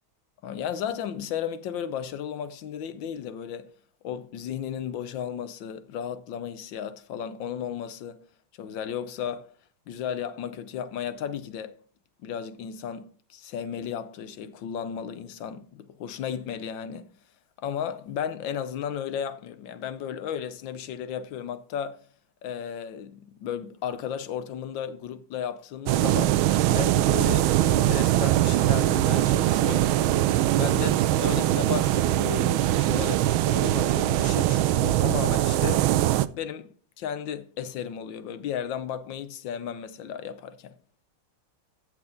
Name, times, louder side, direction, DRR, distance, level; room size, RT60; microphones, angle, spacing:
voice 1, 0.4-3.8 4.0-8.3 8.6-9.5 9.9-11.8 12.2-17.2 17.6-22.1 22.4-26.5 26.7-30.0 30.5-36.0 36.3-40.7, left 8 dB, 70° left, 1.4 m, -34 dB
sound 1, 25.9-36.3, right 14 dB, 80° right, 1.4 m, -22 dB
14.5 x 6.3 x 3.8 m
omnidirectional pair, 2.3 m